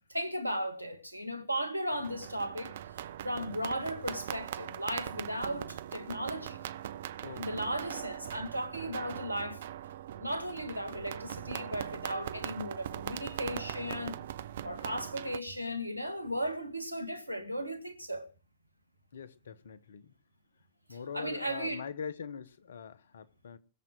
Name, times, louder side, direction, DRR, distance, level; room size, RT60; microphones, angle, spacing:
voice 1, 0.1-2.7 3.2-6.6 7.4-9.6 10.2-14.2 14.6-18.3 20.9-21.8, equal, 90° right, 1.9 m, -36 dB
sound 1, 1.9-15.4, right 11 dB, 60° right, 0.8 m, -41 dB
voice 2, 7.2-7.8 19.1-20.1 20.9-23.6, left 6 dB, 65° left, 1.3 m, -43 dB
20.5 x 7.6 x 7.9 m
figure-of-eight pair, 90°, 0 cm